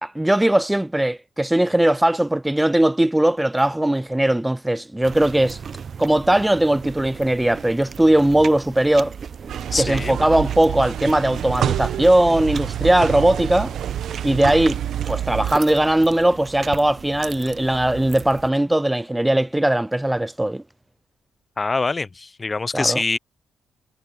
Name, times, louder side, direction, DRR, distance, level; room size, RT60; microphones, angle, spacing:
voice 1, 0.0-5.6 6.0-9.1 9.8-13.7 14.2-14.8 15.1-20.6 22.7-23.0, right 1 dB, 10° right, 0.4 m, -19 dB
sound 1, 5.0-18.5, right 7 dB, 50° right, 0.7 m, -37 dB
sound 2, 9.5-15.6, right 10 dB, 70° right, 1.0 m, -27 dB
voice 2, 9.7-10.2 21.6-23.2, left 3 dB, 25° left, 0.7 m, -24 dB
cardioid pair, 90°, 0 cm